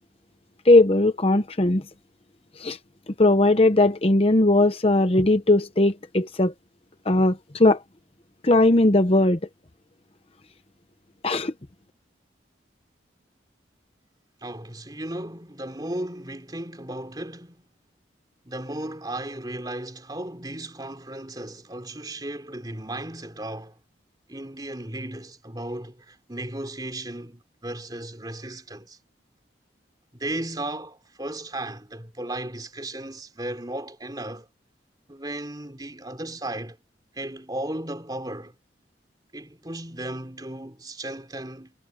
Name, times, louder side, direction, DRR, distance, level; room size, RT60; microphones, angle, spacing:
voice 1, 0.6-1.8 2.6-2.8 3.2-6.5 7.1-7.8 8.4-9.4 11.2-11.5, left 2 dB, 30° left, 0.9 m, -19 dB
voice 2, 14.4-17.7 18.4-23.8 24.3-29.0 30.1-34.5 35.1-36.8 37.1-38.5 39.3-41.7, right 1 dB, 20° right, 3.2 m, -35 dB
head